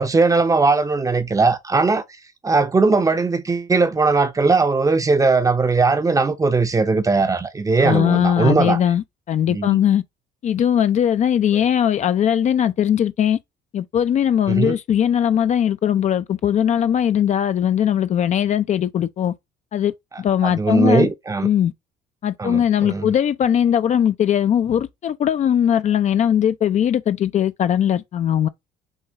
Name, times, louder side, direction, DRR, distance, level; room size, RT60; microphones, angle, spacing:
voice 1, 0.0-2.0 2.4-8.8 9.5-9.8 14.5-14.8 20.4-21.5 22.4-23.1, right 3 dB, 20° right, 0.6 m, -19 dB
voice 2, 7.8-10.0 10.4-13.4 13.7-19.3 19.7-19.9 20.2-21.1 21.4-21.7 22.2-28.5, left 9 dB, 45° left, 0.4 m, -19 dB
6.3 x 2.4 x 2.8 m
cardioid pair, 110°, 17 cm